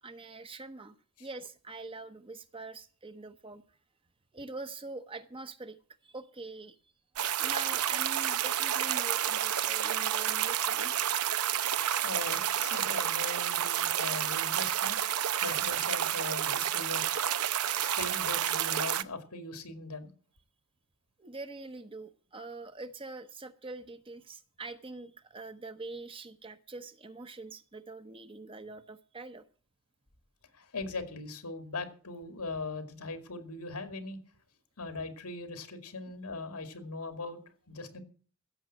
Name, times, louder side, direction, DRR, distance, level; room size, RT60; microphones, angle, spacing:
voice 1, 0.0-3.6 4.3-5.8 6.0-6.8 7.4-10.9 21.2-29.4, right 3 dB, 25° right, 10 dB, 0.9 m, -44 dB
sound 1, 7.2-19.0, right 10 dB, 80° right, 0.7 m, -30 dB
voice 2, 12.0-15.0 15.4-17.3 17.8-20.1 30.5-34.2 34.8-37.4 37.7-38.0, left 3 dB, 90° left, 7 dB, 2.4 m, -40 dB
15.5 x 7.3 x 7.5 m, 0.42 s
head